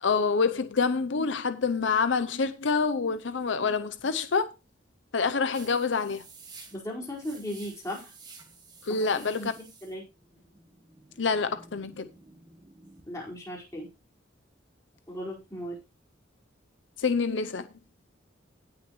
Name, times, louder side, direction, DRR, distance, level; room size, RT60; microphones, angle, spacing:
voice 1, 0.0-4.5 5.1-6.2 8.8-9.5 11.2-12.1 17.0-17.7, left 5 dB, 75° left, 0.6 m, -27 dB
sound 1, 5.5-13.0, right 4 dB, 20° right, 1.9 m, -52 dB
voice 2, 6.7-8.1 8.9-9.5 9.8-10.0 13.0-13.9 15.1-15.8, equal, 20° left, 4.7 m, -37 dB
17.5 x 6.1 x 3.1 m
head